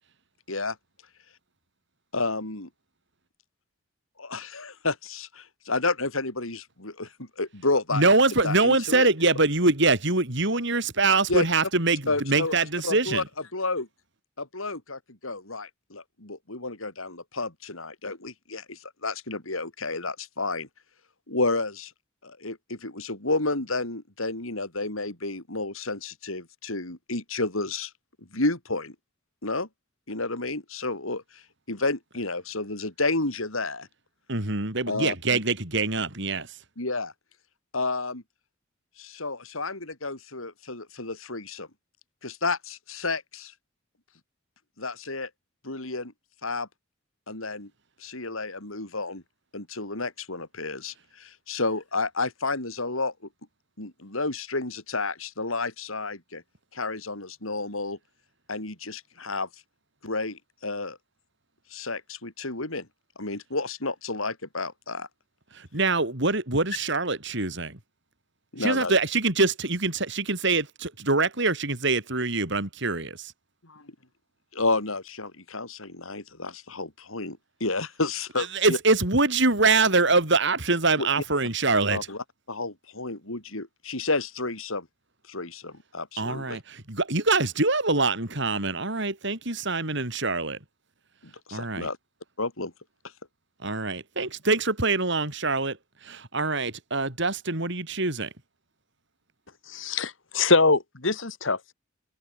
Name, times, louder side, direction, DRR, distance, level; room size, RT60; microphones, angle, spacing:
voice 1, 2.1-2.7 4.2-8.0 8.4-9.1 11.3-11.4 12.1-12.6 12.8-13.2 13.5-13.9 14.4-20.7 21.3-21.9 22.2-27.9 28.3-28.9 29.4-29.7 30.1-31.4 31.7-33.9 34.9-35.4 36.8-37.1 37.7-38.2 39.0-41.7 42.2-43.5 44.8-45.3 45.6-46.1 46.4-46.7 47.3-47.7 48.0-49.2 49.5-53.1 53.8-56.4 56.7-58.0 58.5-59.5 60.0-61.0 61.7-62.9 63.2-65.1 68.5-68.9 73.6-73.9 74.5-78.8 81.0-81.1 81.9-84.9 85.3-86.6 91.5-92.0 92.4-92.7, left 3 dB, 90° left, 4.7 m, -31 dB
voice 2, 7.9-13.2 34.3-36.5 65.5-67.8 68.6-73.3 78.5-82.0 86.2-90.6 91.5-91.9 93.6-95.8 96.0-98.3, right 3 dB, 60° right, 4.9 m, -24 dB
voice 3, 99.7-101.7, left 3 dB, 65° left, 2.3 m, -23 dB
head